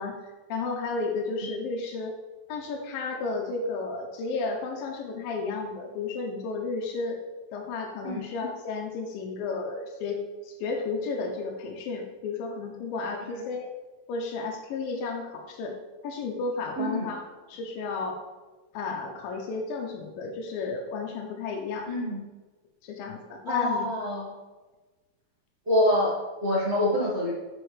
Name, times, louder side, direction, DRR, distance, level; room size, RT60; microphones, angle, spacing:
voice 1, 0.0-2.1 2.5-7.2 7.5-13.7 14.1-15.8 16.0-17.2 17.5-18.2 18.7-21.9 22.8-23.9, left 4 dB, 90° left, 2 dB, 2.6 m, -33 dB
voice 2, 21.9-22.2 23.5-24.3 25.7-27.3, left 1 dB, 80° right, -8 dB, 0.6 m, -26 dB
7.9 x 6.1 x 3.2 m, 1.2 s
omnidirectional pair, 4.0 m